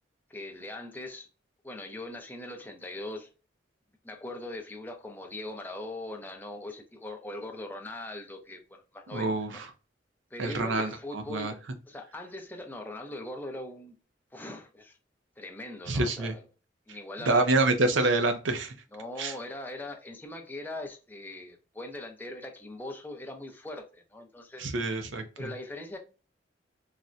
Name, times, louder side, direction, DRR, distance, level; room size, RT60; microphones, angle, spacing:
voice 1, 0.3-1.3 1.6-3.3 4.0-9.6 10.3-11.6 11.9-13.9 14.3-15.0 15.4-16.5 16.9-17.5 18.9-24.7 25.4-26.0, left 1 dB, 10° left, 0.5 m, -41 dB
voice 2, 9.1-9.7 10.4-11.5 15.9-16.3 17.3-18.7 19.2-19.3 24.6-25.5, right 2 dB, 90° right, 0.6 m, -27 dB
4.0 x 2.2 x 2.4 m
head